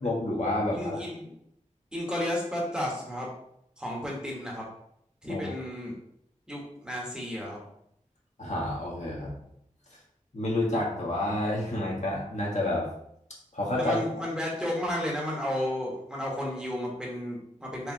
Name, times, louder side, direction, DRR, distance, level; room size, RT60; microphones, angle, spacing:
voice 1, 0.0-1.0 5.3-5.4 8.4-9.3 10.3-12.9 13.5-14.0, left 1 dB, 60° left, -3 dB, 1.4 m, -29 dB
voice 2, 0.7-1.3 1.9-3.3 3.8-4.6 5.2-5.9 6.5-7.6 13.8-17.9, left 1 dB, 5° right, -3 dB, 1.3 m, -33 dB
4.6 x 3.3 x 2.9 m, 0.73 s
wide cardioid pair, 65°, 13 cm